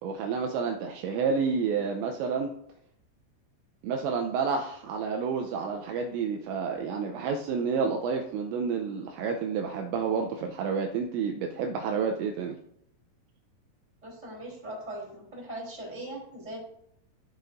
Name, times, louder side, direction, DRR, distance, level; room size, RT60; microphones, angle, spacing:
voice 1, 0.0-2.5 3.8-12.6, right 5 dB, 85° right, 3 dB, 2.6 m, -29 dB
voice 2, 14.0-16.6, right 1 dB, 10° right, -4 dB, 2.9 m, -40 dB
14.0 x 6.6 x 2.6 m, 0.72 s
omnidirectional pair, 5.8 m